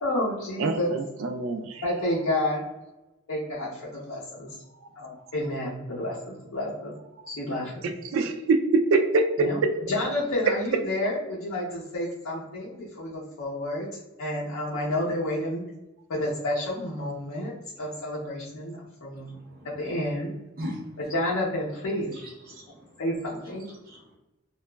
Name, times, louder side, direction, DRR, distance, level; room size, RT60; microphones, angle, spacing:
voice 1, 0.0-0.9 1.8-2.7 3.3-4.5 5.0-6.9 7.3-7.8 9.4-9.6 9.9-13.9 14.2-15.6 16.1-17.5 17.8-19.3 19.6-20.3 21.1-22.1 23.0-23.7, left 1 dB, 85° left, -6 dB, 0.6 m, -30 dB
voice 2, 0.6-1.8 8.0-9.3, right 3 dB, 70° right, 7 dB, 0.3 m, -24 dB
voice 3, 19.1-19.7 20.6-21.0 22.1-23.0 23.4-23.5 23.8-24.2, left 1 dB, 45° right, -3 dB, 0.8 m, -40 dB
2.8 x 2.2 x 2.2 m, 1.0 s
head